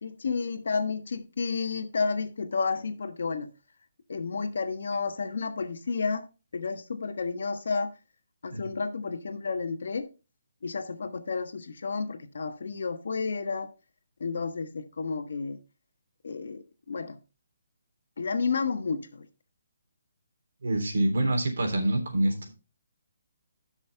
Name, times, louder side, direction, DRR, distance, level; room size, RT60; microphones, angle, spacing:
voice 1, 0.0-3.5 4.1-7.9 8.4-10.1 10.6-13.7 14.2-15.6 16.2-17.2 18.2-19.3, left 4 dB, 60° left, 1.2 m, -31 dB
voice 2, 20.6-22.5, right 1 dB, 70° right, 3.3 m, -26 dB
12.0 x 6.2 x 3.5 m
hypercardioid pair, 175°, 0 cm